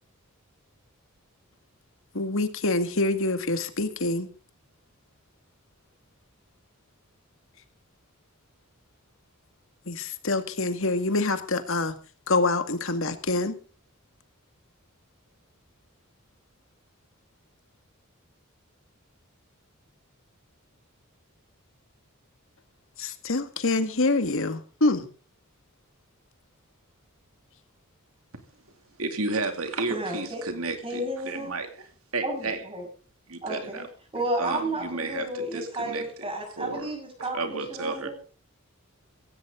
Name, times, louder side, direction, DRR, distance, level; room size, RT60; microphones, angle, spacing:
voice 1, 2.1-4.3 9.9-11.9 12.3-13.5 23.0-25.1, left 2 dB, 65° left, 9 dB, 2.0 m, -26 dB
voice 2, 29.0-31.9 32.1-32.6 33.3-33.9 34.2-36.0 36.6-36.9 37.2-38.1, right 3 dB, 85° right, 7 dB, 2.6 m, -32 dB
voice 3, 29.9-30.4 30.8-31.5 32.2-32.9 33.4-33.9 34.1-38.1, right 1 dB, 25° right, 2 dB, 6.9 m, -32 dB
16.0 x 16.0 x 3.8 m, 0.37 s
head